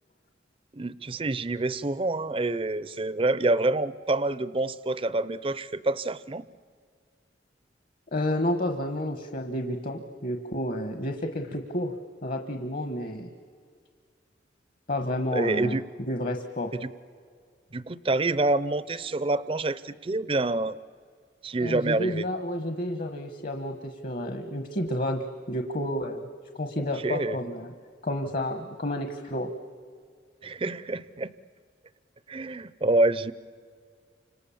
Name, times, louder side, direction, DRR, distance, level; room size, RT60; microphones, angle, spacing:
voice 1, 0.7-6.4 15.3-15.8 16.7-16.9 17.7-20.8 21.4-22.2 27.0-27.4 30.4-31.3 32.3-33.3, right 2 dB, 30° right, 17 dB, 0.6 m, -27 dB
voice 2, 8.1-11.9 12.2-13.3 14.9-15.8 16.1-16.7 21.6-26.3 26.5-27.7 28.0-29.5, left 1 dB, 50° left, 6 dB, 1.3 m, -30 dB
29.5 x 26.5 x 7.2 m, 2.1 s
head